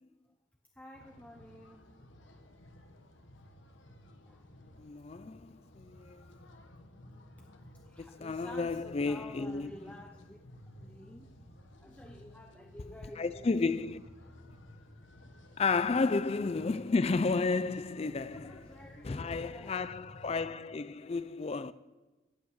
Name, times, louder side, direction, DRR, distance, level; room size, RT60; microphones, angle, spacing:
voice 1, 0.7-1.9 2.2-2.7 4.2-4.5 7.3-10.4 10.8-11.4 11.8-13.5 17.9-19.9, left 1 dB, 5° left, 0.7 m, -51 dB
sound 1, 0.9-20.5, left 1 dB, 70° left, 1.4 m, -55 dB
voice 2, 4.8-6.4 8.0-9.7 13.2-14.0 15.6-18.8 19.0-21.7, left 4 dB, 30° left, 0.4 m, -32 dB
15.5 x 8.6 x 7.2 m
head